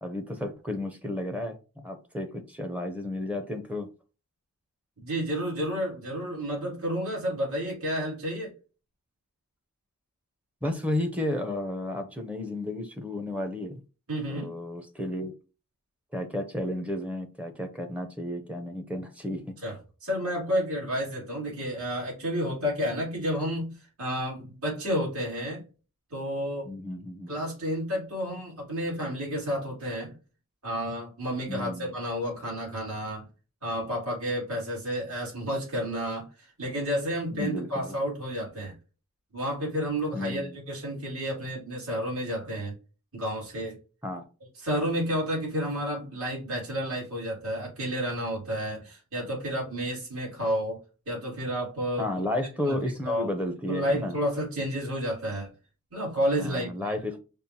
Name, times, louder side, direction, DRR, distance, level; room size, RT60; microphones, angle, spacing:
voice 1, 0.0-3.9 10.6-13.8 14.3-15.3 16.1-19.6 26.7-27.3 31.5-31.9 37.3-38.0 40.1-40.6 44.0-44.3 52.0-54.2 56.4-57.2, left 1 dB, 5° right, 6 dB, 0.5 m, -32 dB
voice 2, 5.0-8.5 14.1-14.5 19.6-19.8 20.0-23.7 24.0-25.6 26.1-26.7 27.3-30.1 30.6-33.3 33.6-38.7 39.3-42.7 43.1-43.8 44.6-50.8 51.1-52.1 52.7-52.8 53.0-53.3 53.7-55.5 55.9-56.9, equal, 65° right, -4 dB, 2.2 m, -31 dB
5.2 x 2.4 x 2.7 m, 0.33 s
head